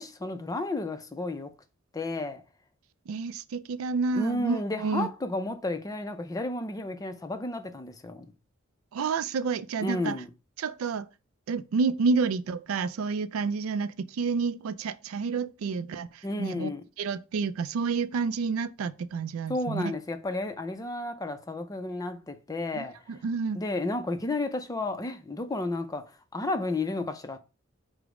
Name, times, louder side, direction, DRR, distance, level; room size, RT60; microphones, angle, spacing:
voice 1, 0.0-1.5 1.9-2.4 4.1-8.3 9.8-10.3 16.2-16.8 19.5-23.0 23.5-27.4, left 2 dB, 15° left, 0.4 m, -32 dB
voice 2, 3.1-5.1 8.9-10.2 10.6-11.1 11.5-16.7 17.0-19.9 22.7-23.6, right 4 dB, 80° right, 0.3 m, -29 dB
4.9 x 2.1 x 4.7 m
head